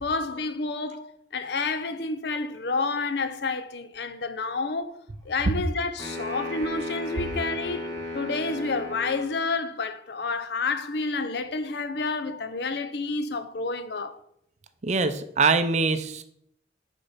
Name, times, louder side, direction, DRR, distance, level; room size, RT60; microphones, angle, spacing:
voice 1, 0.0-5.0 5.2-7.9 8.1-14.2, left 3 dB, 60° left, 0.6 m, -29 dB
sound 1, 6.0-9.3, left 1 dB, 20° left, 1.8 m, -35 dB
voice 2, 14.8-16.2, right 4 dB, 40° right, 0.5 m, -23 dB
6.7 x 4.2 x 5.6 m
head